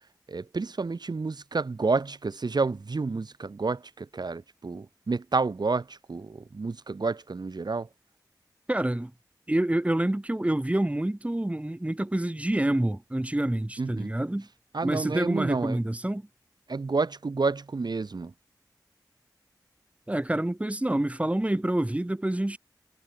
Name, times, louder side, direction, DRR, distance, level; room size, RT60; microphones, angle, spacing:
voice 1, 0.3-7.9 13.8-14.1 14.7-15.8 16.7-18.3, right 4 dB, 70° right, 7.6 m, -29 dB
voice 2, 8.7-9.1 9.5-14.5 14.8-16.2 20.1-22.6, right 1 dB, 15° right, 2.5 m, -27 dB
wide cardioid pair, 80°, 7 cm